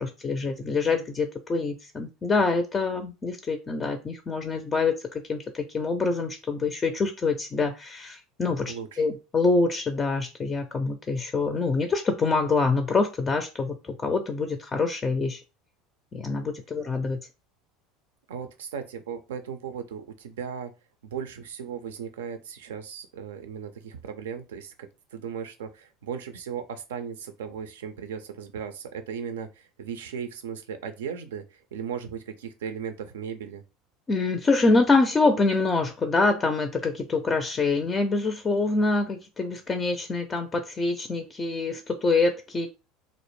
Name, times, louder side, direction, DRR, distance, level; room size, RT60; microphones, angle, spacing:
voice 1, 0.0-15.4 16.1-17.2 34.1-42.7, left 3 dB, 25° left, 6 dB, 0.4 m, -25 dB
voice 2, 8.7-9.0 18.3-20.7 21.0-24.7 25.1-33.6, right 7 dB, 80° right, 8 dB, 0.4 m, -36 dB
2.4 x 2.0 x 3.1 m, 0.29 s
hypercardioid pair, 80°, 0 cm